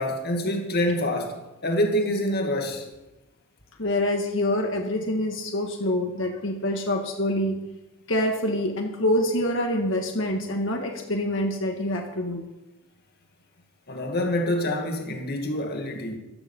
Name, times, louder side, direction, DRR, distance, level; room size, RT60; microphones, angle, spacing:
voice 1, 0.0-2.9 13.9-16.2, left 1 dB, 50° left, 2.1 m, -26 dB
voice 2, 3.8-7.6 8.1-12.4, left 1 dB, 65° left, 1.9 m, -26 dB
15.0 x 12.0 x 5.5 m
head